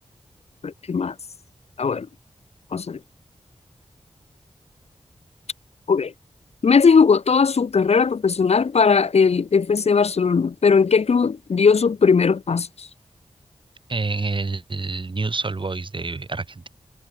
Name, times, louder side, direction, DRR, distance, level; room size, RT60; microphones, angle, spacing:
voice 1, 0.6-1.1 1.8-2.1 2.7-3.0 5.9-6.1 6.6-12.9, left 5 dB, 65° left, 0.9 m, -18 dB
voice 2, 13.9-16.7, right 3 dB, 45° right, 3.3 m, -27 dB
wide cardioid pair, 60°, 11 cm